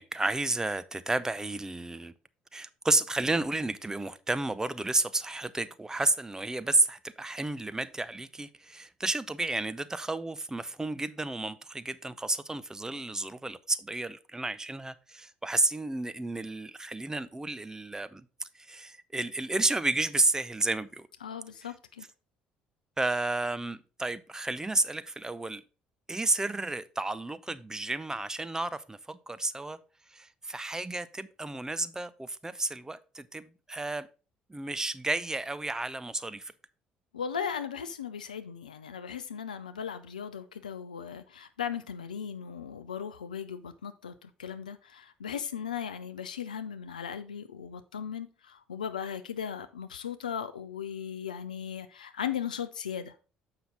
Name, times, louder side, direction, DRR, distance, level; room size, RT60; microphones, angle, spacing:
voice 1, 0.0-2.1 2.5-21.1 23.0-25.6 26.1-29.8 30.1-34.1 34.5-36.5, right 2 dB, 15° right, 0.6 m, -31 dB
voice 2, 21.2-22.1 37.1-53.1, left 8 dB, 85° left, 0.4 m, -37 dB
7.1 x 5.7 x 3.8 m
figure-of-eight pair, 55°, 4 cm